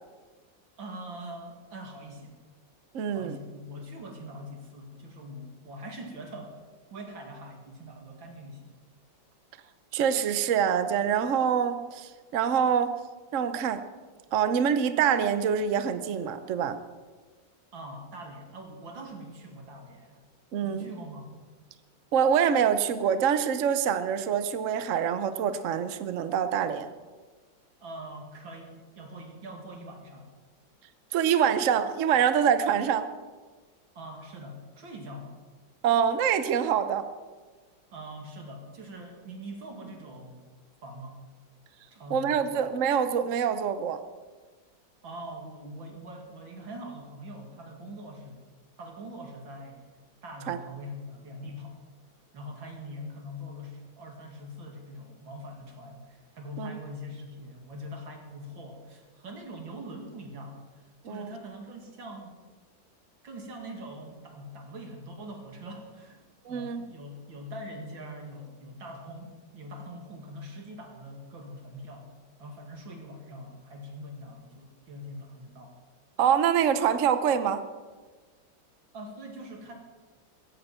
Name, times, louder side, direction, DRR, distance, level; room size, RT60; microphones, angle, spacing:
voice 1, 0.8-2.3 3.1-6.6 6.9-8.7 17.7-20.2 20.6-21.4 27.8-30.3 33.9-35.4 37.9-40.4 40.8-41.2 41.9-42.6 45.0-48.4 48.8-49.8 50.2-51.8 52.3-62.4 63.2-66.2 66.5-72.1 72.4-75.8 78.9-79.7, equal, 90° right, 2 dB, 3.1 m, -43 dB
voice 2, 2.9-3.4 9.9-13.0 13.3-13.8 14.3-16.8 20.5-20.9 22.1-26.9 31.1-33.1 35.8-37.1 42.1-44.0 50.5-50.6 56.6-56.8 61.0-61.3 66.5-66.9 76.2-77.7, right 8 dB, 55° right, 10 dB, 1.0 m, -25 dB
16.5 x 16.0 x 4.4 m, 1.4 s
omnidirectional pair, 2.1 m